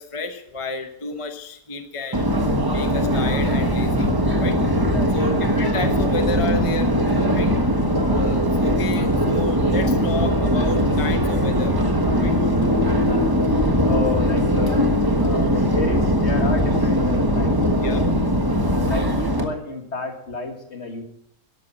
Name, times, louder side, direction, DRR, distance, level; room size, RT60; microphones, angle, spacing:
voice 1, 0.0-2.3 2.7-4.1 4.4-4.6 5.1-6.9 7.3-7.5 8.1-11.9 12.2-12.4 17.8-18.0, left 2 dB, 25° left, 6 dB, 0.8 m, -31 dB
Subway metro underground, 2.1-19.4, equal, 15° right, 1.2 m, -20 dB
voice 2, 4.9-5.2 12.6-12.9 13.8-14.9 15.2-18.1 18.6-21.0, left 3 dB, 45° left, 5 dB, 2.0 m, -31 dB
13.5 x 11.0 x 5.6 m, 0.73 s
omnidirectional pair, 1.7 m